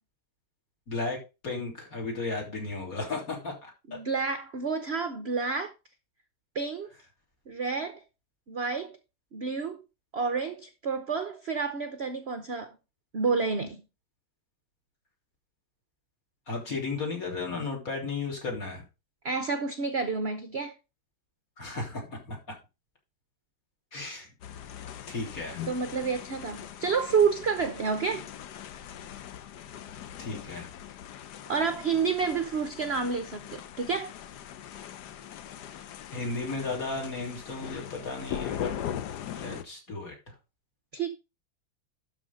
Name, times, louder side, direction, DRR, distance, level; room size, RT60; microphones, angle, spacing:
voice 1, 0.9-4.0 16.5-18.8 21.6-22.4 23.9-24.3 25.1-25.7 30.2-30.7 36.1-38.8 39.3-40.3, left 3 dB, 45° left, 3.6 m, -35 dB
voice 2, 3.9-5.7 6.5-6.9 7.5-8.0 8.5-9.0 9.3-9.8 10.1-12.8 13.1-13.8 19.2-20.7 24.9-25.0 25.7-28.3 31.5-34.1 40.9-41.1, right 5 dB, 60° right, 0.6 m, -29 dB
sound 1, 24.4-39.6, left 10 dB, 65° left, 1.2 m, -40 dB
12.0 x 4.2 x 5.3 m
omnidirectional pair, 2.2 m